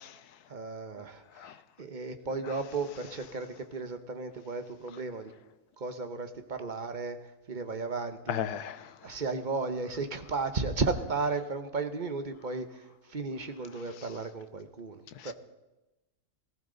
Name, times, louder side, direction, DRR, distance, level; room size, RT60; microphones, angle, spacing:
voice 1, 0.5-5.3 5.8-7.2 7.5-8.4 9.0-15.3, right 4 dB, 35° right, 8 dB, 1.0 m, -34 dB
voice 2, 8.3-9.1 15.2-15.3, left 9 dB, 80° left, 13 dB, 1.3 m, -35 dB
19.0 x 15.0 x 3.9 m, 1.0 s
omnidirectional pair, 1.7 m